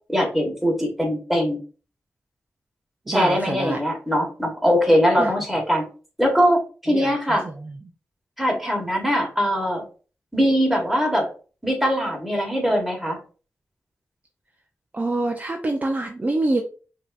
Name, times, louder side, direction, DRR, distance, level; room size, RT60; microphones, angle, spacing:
voice 1, 0.1-1.6 3.1-5.8 6.2-7.5 8.4-9.8 10.3-11.3 11.6-13.2, equal, 5° right, 1 dB, 1.5 m, -21 dB
voice 2, 3.1-3.8 5.2-5.3 6.9-7.8 14.9-16.6, right 2 dB, 30° right, 3 dB, 0.5 m, -26 dB
5.4 x 2.8 x 2.5 m, 0.37 s
wide cardioid pair, 75°, 5 cm